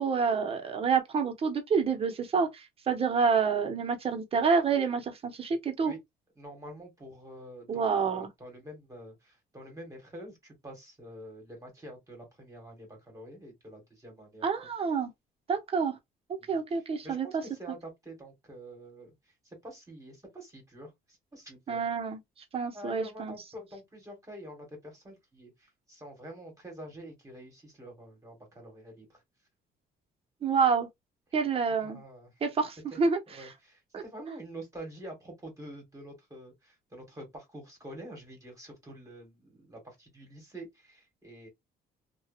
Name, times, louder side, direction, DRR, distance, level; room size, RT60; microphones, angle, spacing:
voice 1, 0.0-5.9 7.7-8.3 14.4-15.1 15.5-16.0 16.3-17.4 21.7-22.2 22.5-23.3 30.4-30.9 31.3-32.0 32.4-33.5 33.9-34.0, right 5 dB, 35° right, 0.8 m, -28 dB
voice 2, 6.4-14.5 16.4-19.1 19.4-21.8 22.7-29.2 31.8-32.3 32.9-33.0 33.3-41.5, right 1 dB, 20° right, 1.5 m, -47 dB
2.7 x 2.3 x 2.3 m
cardioid pair, 110°, 17 cm